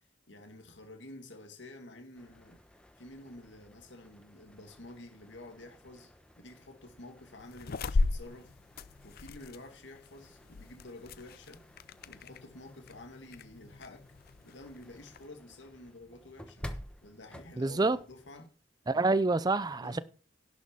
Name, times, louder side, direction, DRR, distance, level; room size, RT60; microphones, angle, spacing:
voice 1, 0.3-2.6 3.0-8.5 9.0-11.6 12.0-14.1 14.4-16.7 17.0-18.5 18.9-19.3 19.8-20.0, left 2 dB, 85° left, 2.3 m, -50 dB
sound 1, 2.1-18.4, equal, 5° left, 1.0 m, -53 dB
sound 2, 7.4-15.3, left 3 dB, 55° left, 0.5 m, -37 dB
voice 2, 17.6-18.0 18.9-20.0, right 3 dB, 20° right, 0.5 m, -27 dB
11.5 x 6.3 x 5.4 m
head